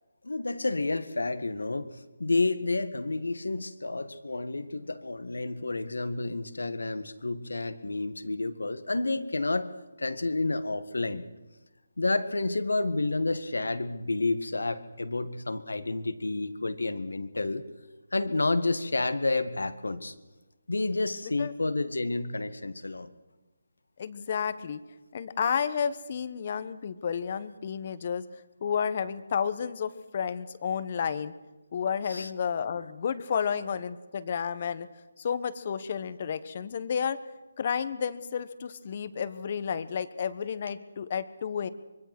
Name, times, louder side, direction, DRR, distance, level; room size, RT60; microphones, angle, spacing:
voice 1, 0.2-1.9 2.2-9.7 10.0-11.2 12.0-17.6 18.1-20.1 20.7-23.1 32.1-32.3, left 2 dB, 85° left, 12 dB, 1.8 m, -30 dB
voice 2, 24.0-24.8 25.1-28.2 28.6-31.3 31.7-34.9 35.2-37.2 37.6-41.7, left 7 dB, 40° left, 14 dB, 1.3 m, -31 dB
25.0 x 23.0 x 6.2 m, 1.1 s
figure-of-eight pair, 160°, 0 cm